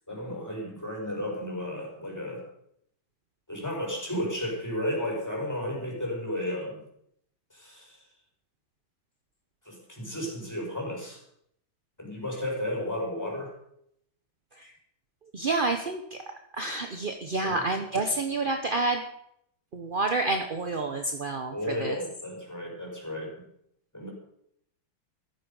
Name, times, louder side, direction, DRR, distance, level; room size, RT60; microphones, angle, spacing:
voice 1, 0.1-2.4 3.5-6.8 7.5-8.0 9.7-11.2 12.0-13.5 17.4-17.6 21.5-23.4 23.9-24.1, left 1 dB, 10° left, -1 dB, 5.3 m, -33 dB
voice 2, 15.3-16.2 16.5-19.0 19.7-22.0, right 3 dB, 40° right, 5 dB, 0.8 m, -29 dB
14.5 x 14.0 x 5.4 m, 0.75 s
omnidirectional pair, 2.2 m